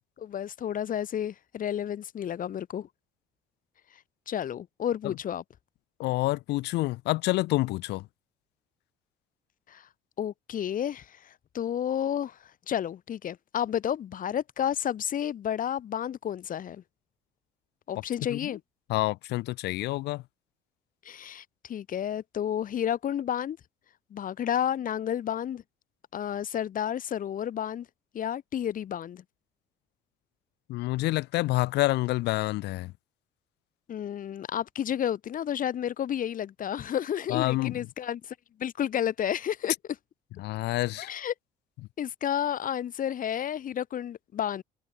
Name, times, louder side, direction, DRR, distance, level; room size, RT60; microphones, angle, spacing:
voice 1, 0.2-2.9 4.3-5.4 9.7-9.9 10.2-12.4 12.7-16.8 17.9-18.6 21.1-23.6 24.1-25.6 26.1-27.9 28.1-29.2 33.9-39.7 41.0-41.3 42.0-44.6, left 10 dB, 55° left, 7.2 m, -31 dB
voice 2, 6.0-8.1 18.3-18.6 18.9-20.2 30.7-32.9 37.3-37.9 40.4-41.1, left 19 dB, 85° left, 2.2 m, -28 dB
cardioid pair, 110°, 17 cm